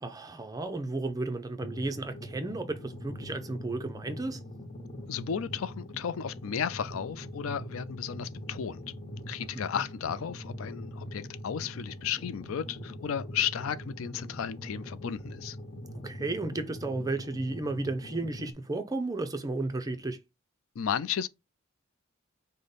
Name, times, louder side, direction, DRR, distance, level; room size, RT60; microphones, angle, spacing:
voice 1, 0.0-4.4 9.4-9.8 16.0-20.2, right 2 dB, 15° right, 0.5 m, -33 dB
sound 1, 1.6-18.5, equal, 30° left, 0.6 m, -43 dB
voice 2, 5.1-8.8 9.3-15.6 20.8-21.3, left 8 dB, 75° left, 0.4 m, -34 dB
5.1 x 2.2 x 3.9 m
head